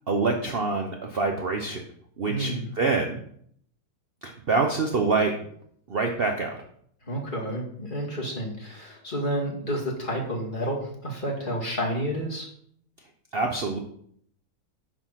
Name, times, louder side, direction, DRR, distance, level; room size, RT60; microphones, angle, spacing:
voice 1, 0.1-1.8 2.2-3.2 4.2-5.3 5.9-6.6 13.3-13.8, right 3 dB, 60° right, 3 dB, 0.6 m, -26 dB
voice 2, 2.2-2.7 7.0-12.5, equal, 25° left, -2 dB, 2.1 m, -30 dB
10.5 x 4.5 x 5.8 m, 0.65 s
omnidirectional pair, 2.2 m